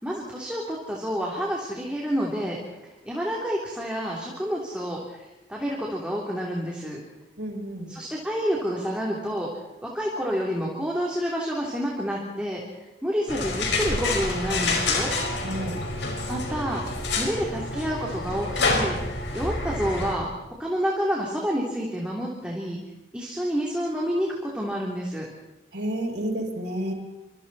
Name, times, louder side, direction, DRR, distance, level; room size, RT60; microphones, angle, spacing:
voice 1, 0.0-2.6 2.8-7.0 7.9-9.5 9.8-15.1 16.3-20.3 20.6-22.8 23.1-25.3, equal, 5° right, -3 dB, 3.3 m, -29 dB
voice 2, 7.4-7.9 15.4-15.8 25.7-26.9, right 1 dB, 80° right, -1 dB, 7.4 m, -30 dB
sound 1, 13.3-20.1, left 2 dB, 90° left, 5.0 m, -28 dB
29.0 x 26.5 x 4.3 m, 1.0 s
head